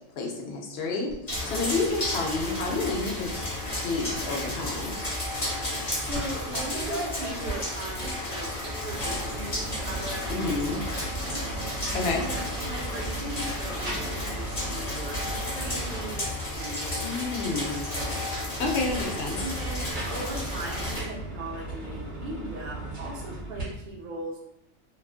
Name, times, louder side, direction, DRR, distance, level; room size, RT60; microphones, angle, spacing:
voice 1, 0.2-3.5 3.8-4.9 10.3-10.8 11.9-12.2 17.0-17.8 18.6-19.5, left 3 dB, 60° left, 1 dB, 0.7 m, -29 dB
sound 1, 1.1-5.7 6.1-6.7, left 1 dB, 15° left, 0.5 m, -48 dB
sound 2, 1.3-21.0, left 1 dB, 35° left, 0.9 m, -33 dB
voice 2, 6.0-8.5 8.8-11.4 12.1-17.6 17.9-18.2 19.4-24.5, right 1 dB, 60° right, -2 dB, 0.5 m, -39 dB
sound 3, 6.1-6.3 6.6-8.1 8.5-16.6 18.3-23.6, right 2 dB, 40° right, 1.0 m, -37 dB
2.4 x 2.3 x 2.4 m, 0.82 s
omnidirectional pair, 1.3 m